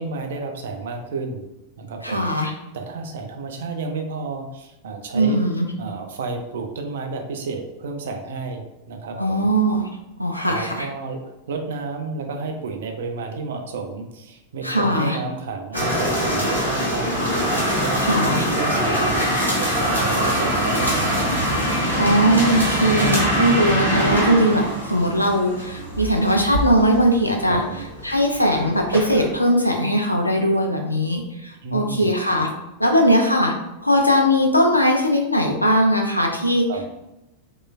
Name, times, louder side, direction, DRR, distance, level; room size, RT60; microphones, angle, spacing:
voice 1, 0.0-1.4 1.8-2.3 2.7-5.4 5.8-9.5 10.5-17.2 17.7-19.3 19.6-21.3 27.4-27.9 31.6-32.1 36.7-36.9, right 4 dB, 60° right, 4 dB, 0.4 m, -31 dB
voice 2, 2.0-2.5 5.1-5.7 9.2-9.9 10.2-10.9 14.6-15.2 17.9-18.5 22.0-27.6 28.0-32.5 32.8-33.5 33.8-36.7, equal, 90° left, 1 dB, 0.4 m, -19 dB
sound 1, 15.7-29.4, equal, 90° right, 0.7 m, -23 dB
3.1 x 2.2 x 2.3 m, 0.94 s
figure-of-eight pair, 90°, 0 cm